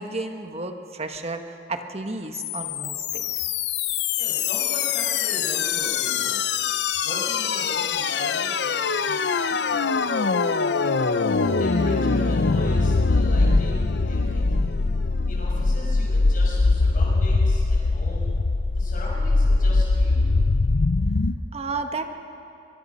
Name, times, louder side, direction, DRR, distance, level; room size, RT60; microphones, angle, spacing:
voice 1, 0.0-3.2 21.5-22.0, right 3 dB, 35° right, 6 dB, 1.3 m, -32 dB
sound 1, 2.3-21.3, left 3 dB, 70° left, 0.6 m, -22 dB
voice 2, 4.2-6.5 7.0-10.1 10.8-14.7 15.3-18.4 18.8-20.3, left 1 dB, 50° left, -4 dB, 6.1 m, -38 dB
23.0 x 22.0 x 5.5 m, 2.8 s
head